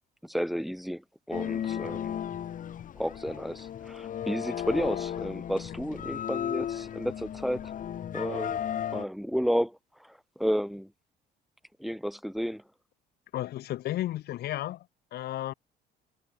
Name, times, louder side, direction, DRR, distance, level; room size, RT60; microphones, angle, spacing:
voice 1, 0.2-2.2 2.9-7.7 8.1-8.6 8.9-10.9 11.8-12.6, equal, ahead, 3.0 m, -32 dB
sound 1, 1.3-9.0, left 9 dB, 50° left, 2.9 m, -35 dB
voice 2, 13.3-14.9 15.1-15.5, left 14 dB, 70° left, 2.8 m, -33 dB
cardioid pair, 110°, 17 cm